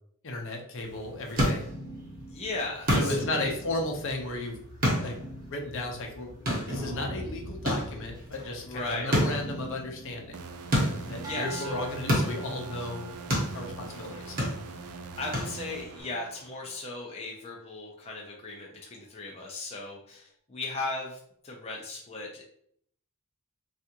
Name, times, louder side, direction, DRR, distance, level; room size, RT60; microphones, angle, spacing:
voice 1, 0.2-1.7 2.9-4.6 5.0-5.2 5.5-10.4 11.1-13.1 13.5-14.4, left 2 dB, 60° left, 2 dB, 0.7 m, -34 dB
sound 1, 0.8-16.0, equal, 40° right, 1.0 m, -32 dB
voice 2, 2.3-3.5 8.6-9.2 11.2-11.8 13.9-14.3 15.2-21.2 21.4-22.4, left 2 dB, 30° left, -1 dB, 0.5 m, -37 dB
sound 2, 10.3-16.8, right 4 dB, 75° right, 0.4 m, -43 dB
sound 3, 11.2-15.7 16.3-16.7, right 5 dB, 15° right, 0.6 m, -47 dB
3.4 x 2.5 x 2.8 m, 0.65 s
head